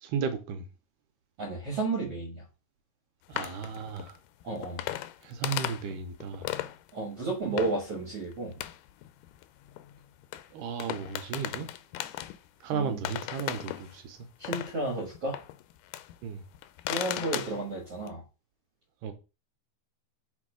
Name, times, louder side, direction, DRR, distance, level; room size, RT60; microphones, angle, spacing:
voice 1, 0.0-0.7 3.3-4.2 5.2-6.5 10.5-11.7 12.6-14.2 16.2-16.4 19.0-19.1, right 6 dB, 80° right, 2.3 m, -34 dB
voice 2, 1.4-2.4 4.4-4.8 6.9-8.6 12.7-13.0 14.4-15.4 16.9-18.2, right 2 dB, 50° right, 2.3 m, -32 dB
sound 1, 3.3-6.9 7.6-8.0 8.3-10.5 10.8-12.7 13.0-16.2 16.5-18.1, left 14 dB, 85° left, 2.1 m, -37 dB
6.3 x 3.7 x 4.9 m
omnidirectional pair, 3.7 m